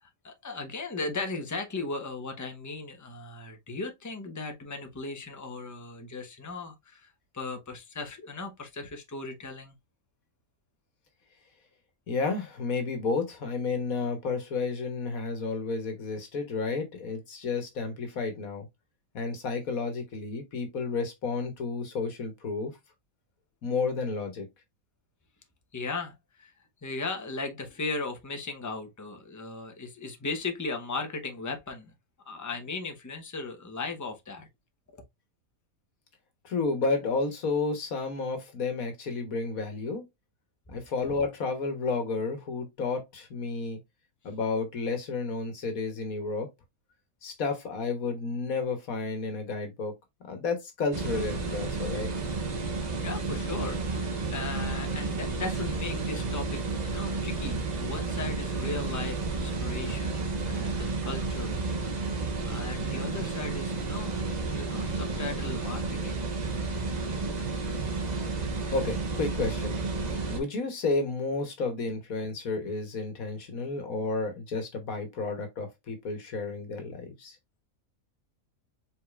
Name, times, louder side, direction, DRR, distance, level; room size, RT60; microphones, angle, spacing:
voice 1, 0.0-9.7 25.7-26.5 26.8-31.9 32.3-34.5 34.9-35.0 52.8-61.6 62.5-66.2 67.2-67.3, left 3 dB, 15° left, 0.8 m, -37 dB
voice 2, 12.1-18.6 19.1-22.7 23.6-24.5 36.4-40.0 40.7-43.8 44.2-46.5 47.2-49.9 50.3-52.1 68.7-69.8 70.3-77.4, left 4 dB, 75° left, 1.6 m, -31 dB
sound 1, 50.9-70.4, right 3 dB, 35° right, 0.8 m, -31 dB
4.9 x 4.0 x 2.4 m
omnidirectional pair, 1.5 m